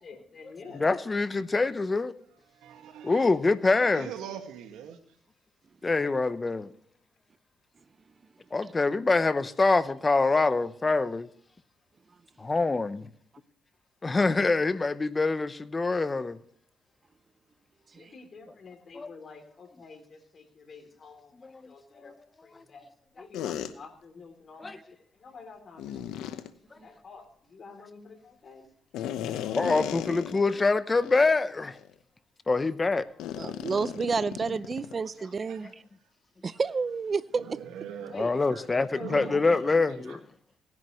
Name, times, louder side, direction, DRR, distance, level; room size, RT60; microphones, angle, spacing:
voice 1, 0.0-0.8 17.9-22.1 22.4-22.9 23.1-24.9 25.1-26.1 26.8-28.7 38.1-39.4, left 4 dB, 45° left, 3.0 m, -48 dB
voice 2, 0.7-2.2 3.0-4.1 5.8-6.7 8.5-11.3 12.4-13.1 14.0-16.4 18.9-19.1 21.4-21.5 22.0-22.1 24.6-24.8 29.5-31.8 32.5-33.1 38.1-40.2, left 3 dB, 25° left, 0.7 m, -25 dB
voice 3, 2.5-3.3 3.7-5.2 35.3-35.7 37.3-38.2 38.5-40.2, right 9 dB, 90° right, 1.7 m, -43 dB
sound 1, 23.3-23.7 25.8-26.5 28.9-30.7 31.0-31.2 31.8-31.9 33.2-35.0, left 10 dB, 90° left, 0.9 m, -35 dB
voice 4, 33.4-35.7 36.4-37.6, right 4 dB, 35° right, 0.6 m, -30 dB
17.5 x 10.5 x 3.0 m
cardioid pair, 90°, 0 cm